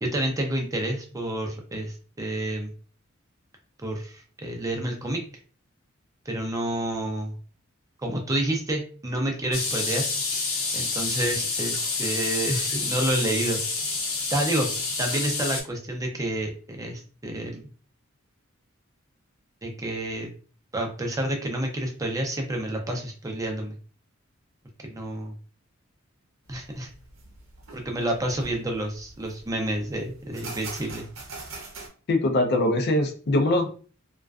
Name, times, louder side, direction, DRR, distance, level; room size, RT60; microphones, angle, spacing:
voice 1, 0.0-2.7 3.8-5.2 6.3-7.3 8.0-10.1 10.7-13.6 14.3-14.7 15.0-17.6 19.6-20.3 20.7-23.8 24.9-25.3 26.5-26.9 27.7-31.1, right 1 dB, 15° right, 2 dB, 0.4 m, -29 dB
sound 1, 9.5-15.6, left 3 dB, 80° left, 0.8 m, -28 dB
sound 2, 26.5-31.9, right 3 dB, 70° right, 0.7 m, -43 dB
voice 2, 32.1-33.7, left 1 dB, 50° left, 5 dB, 0.4 m, -22 dB
2.4 x 2.2 x 2.2 m, 0.40 s
head